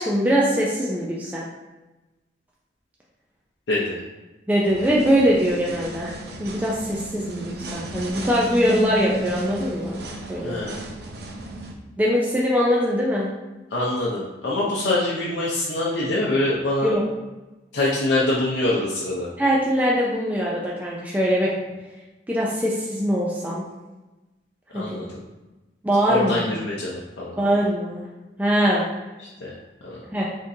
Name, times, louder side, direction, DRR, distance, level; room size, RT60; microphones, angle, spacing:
voice 1, 0.0-1.5 4.5-6.1 6.4-10.0 10.3-10.6 12.0-13.3 16.8-17.0 19.4-21.5 22.3-23.6 24.7-25.0 25.8-26.4 27.4-28.0 28.4-28.8 30.1-30.3, equal, 10° right, -5 dB, 0.4 m, -22 dB
voice 2, 3.7-4.0 10.4-10.8 13.7-16.9 17.7-19.3 24.7-25.2 26.1-27.4 29.2-29.5 29.8-30.0, left 2 dB, 85° left, -6 dB, 0.7 m, -24 dB
sound 1, 4.6-11.7, right 1 dB, 65° right, 0.5 m, -34 dB
4.0 x 3.6 x 2.7 m, 1.1 s
head